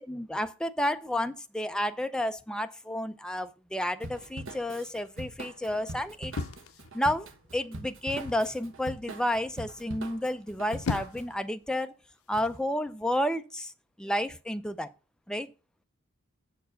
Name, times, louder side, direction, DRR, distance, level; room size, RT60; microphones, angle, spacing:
voice 1, 0.1-6.3 6.9-7.3 7.5-11.9 12.3-13.7 14.0-14.9 15.3-15.5, left 1 dB, 5° left, 0.4 m, -31 dB
Drum kit / Drum, 4.0-11.3, right 2 dB, 60° right, 1.1 m, -43 dB
sound 1, 6.3-7.4 8.1-8.5 10.5-11.4 12.3-12.6, left 4 dB, 75° left, 0.6 m, -36 dB
7.7 x 4.6 x 6.2 m
head